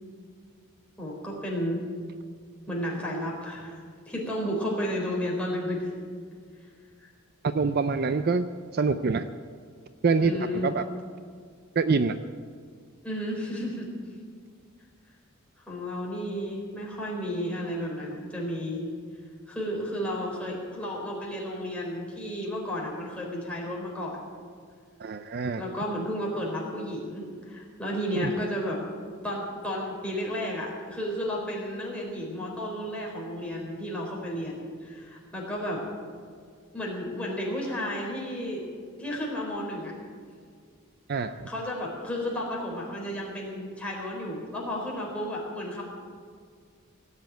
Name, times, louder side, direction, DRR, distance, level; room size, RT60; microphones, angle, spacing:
voice 1, 1.0-1.8 2.7-3.8 4.1-5.8 7.0-7.1 10.2-10.7 13.0-13.9 15.7-18.8 19.5-24.2 25.6-28.9 29.2-35.9 36.7-38.7 39.0-39.9 41.5-45.8, equal, 5° left, -3 dB, 4.0 m, -32 dB
voice 2, 7.4-8.5 8.7-9.3 10.0-10.4 10.6-10.8 11.8-12.2 25.0-25.6 28.2-28.3 41.1-41.5, right 4 dB, 45° right, 11 dB, 0.5 m, -25 dB
17.5 x 8.2 x 9.1 m, 2.1 s
head